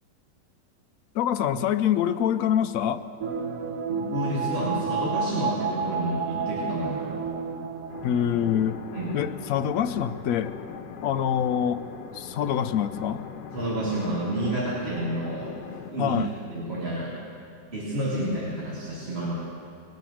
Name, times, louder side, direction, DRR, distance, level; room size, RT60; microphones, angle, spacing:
voice 1, 1.1-3.0 8.0-8.8 9.1-10.5 11.0-11.8 12.1-13.2 16.0-16.3, left 9 dB, 70° left, 10 dB, 0.8 m, -25 dB
sound 1, 3.2-9.1 9.4-9.5, right 5 dB, 60° right, 1.0 m, -31 dB
voice 2, 3.9-7.2 8.9-9.1 13.5-16.2 16.5-17.1 17.7-19.3, right 1 dB, 35° right, -8 dB, 2.6 m, -30 dB
sound 2, 7.9-15.9, left 6 dB, 85° left, 1.5 m, -40 dB
20.0 x 9.3 x 6.4 m, 2.6 s
omnidirectional pair, 1.9 m